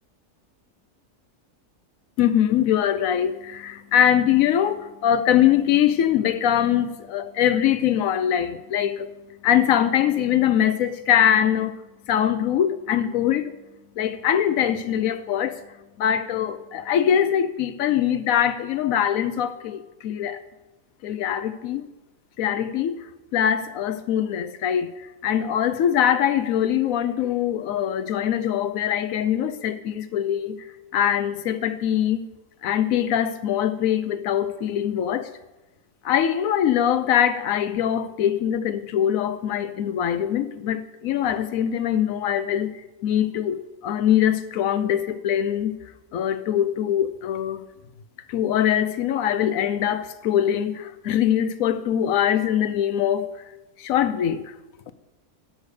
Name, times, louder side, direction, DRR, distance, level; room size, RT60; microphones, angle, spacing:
voice 1, 2.2-9.1 9.4-11.7 12.1-13.6 14.0-15.6 16.0-20.4 21.0-21.9 22.4-23.0 23.3-24.9 25.2-30.7 30.9-32.3 32.6-35.3 36.0-45.8 46.1-47.6 48.3-53.3 53.8-54.5, left 10 dB, 70° left, 1.0 m, -22 dB
9.2 x 6.7 x 6.4 m
omnidirectional pair, 1.7 m